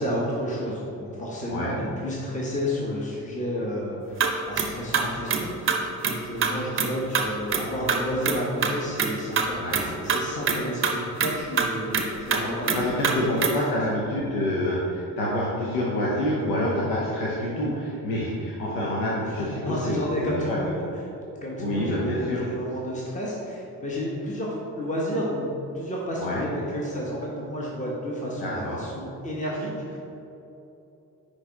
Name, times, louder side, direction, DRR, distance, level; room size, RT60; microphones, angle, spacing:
voice 1, 0.0-13.6 19.2-20.8 21.4-25.5 25.7-30.0, equal, 15° left, -4 dB, 1.3 m, -31 dB
sound 1, 4.2-4.3 4.6-4.7 4.9-5.4 5.7-5.8 6.0-6.1 6.4-6.5 6.8-6.9 7.1-7.2 7.5-7.6 7.9-8.3 8.6-8.7 9.0-9.1 9.4-9.5 9.7-9.8 10.1-10.2 10.5-10.6 10.8-10.9 11.2-11.3 11.6-11.7 11.9-12.0 12.3-12.4 12.7-12.8 13.0-13.1 13.4-13.5, right 6 dB, 25° right, 0.8 m, -23 dB
voice 2, 9.6-9.9 12.0-20.6 21.6-22.4 26.2-26.4 28.4-28.8, left 1 dB, 70° left, -5 dB, 1.1 m, -27 dB
9.8 x 3.3 x 3.6 m, 2.9 s
figure-of-eight pair, 50°, 50 cm